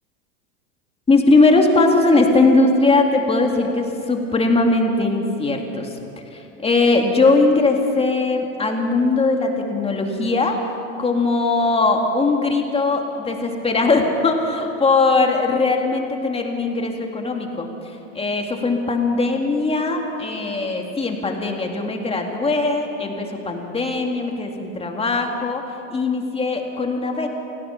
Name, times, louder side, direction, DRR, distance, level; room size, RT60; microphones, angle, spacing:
voice 1, 1.1-6.0 6.3-10.6 11.0-27.3, left 3 dB, 15° left, 2 dB, 2.3 m, -20 dB
26.5 x 17.0 x 5.9 m, 2.7 s
hypercardioid pair, 115°, 38 cm